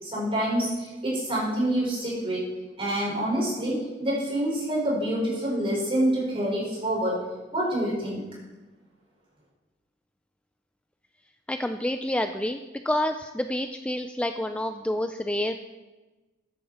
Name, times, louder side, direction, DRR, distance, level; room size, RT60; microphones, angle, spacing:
voice 1, 0.0-2.5 2.8-7.2 7.5-8.2, right 1 dB, 30° right, -4 dB, 5.1 m, -27 dB
voice 2, 11.5-12.6 12.8-15.6, left 1 dB, 5° left, 7 dB, 0.4 m, -28 dB
14.0 x 10.5 x 4.3 m, 1.2 s
head